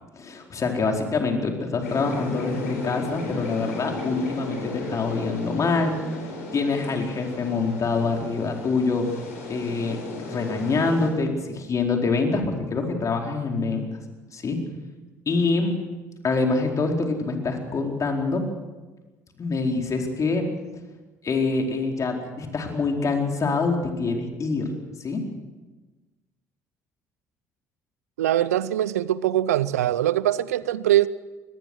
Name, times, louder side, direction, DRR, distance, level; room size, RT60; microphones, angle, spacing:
voice 1, 0.1-6.0 6.5-9.1 9.5-13.9 14.3-14.6 15.3-15.7 16.2-18.4 19.4-20.4 21.2-24.7 25.0-25.2, left 3 dB, 40° left, 2 dB, 4.5 m, -25 dB
sound 1, 1.8-11.1, left 3 dB, 85° left, 4.7 m, -35 dB
voice 2, 28.2-31.1, right 13 dB, 85° right, 18 dB, 0.6 m, -22 dB
23.5 x 19.5 x 6.4 m, 1.2 s
hypercardioid pair, 55°, 8 cm